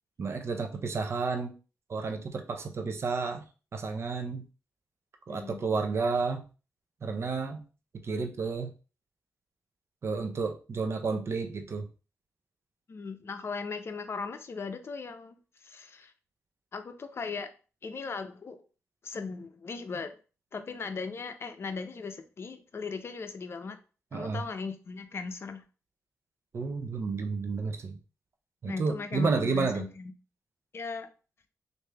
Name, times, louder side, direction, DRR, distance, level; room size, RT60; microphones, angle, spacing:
voice 1, 0.2-1.5 1.9-3.4 3.7-4.4 5.3-6.4 7.0-7.7 8.0-8.7 10.0-11.9 24.1-24.4 26.5-28.0 28.6-29.9, right 4 dB, 55° right, 6 dB, 0.6 m, -31 dB
voice 2, 5.3-5.7 12.9-16.1 16.7-17.5 17.8-18.6 19.0-20.1 20.5-23.8 24.1-25.6 28.7-30.1 30.7-31.1, left 4 dB, 50° left, 8 dB, 0.6 m, -38 dB
3.1 x 2.6 x 3.4 m, 0.35 s
cardioid pair, 70°, 6 cm